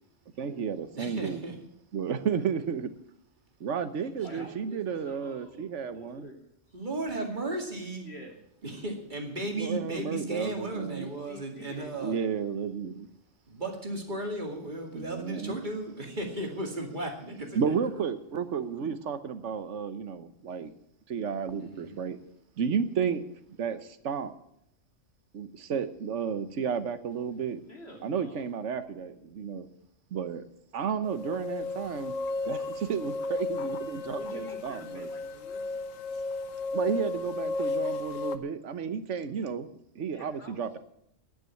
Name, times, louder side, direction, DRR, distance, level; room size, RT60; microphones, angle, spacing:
voice 1, 0.4-1.4 1.9-2.9 3.6-6.2 9.6-11.1 12.0-13.1 14.9-15.6 17.5-20.7 21.1-22.2 22.6-23.2 23.6-24.3 25.3-27.6 28.0-29.7 30.1-30.4 30.7-32.1 32.5-35.1 36.7-40.8, right 6 dB, 70° right, 11 dB, 1.3 m, -32 dB
voice 2, 1.0-1.5 4.2-4.4 6.7-8.1 8.6-12.2 13.5-17.8 21.6-22.1, right 1 dB, 40° right, 2 dB, 2.5 m, -35 dB
voice 3, 4.2-6.4 8.0-8.4 10.9-12.4 27.7-28.5 32.5-32.6 34.2-35.7 40.1-40.8, left 1 dB, 55° left, 1 dB, 3.4 m, -48 dB
sound 1, 31.0-38.4, left 3 dB, 90° left, 1.2 m, -34 dB
10.5 x 9.4 x 9.1 m, 0.75 s
omnidirectional pair, 1.3 m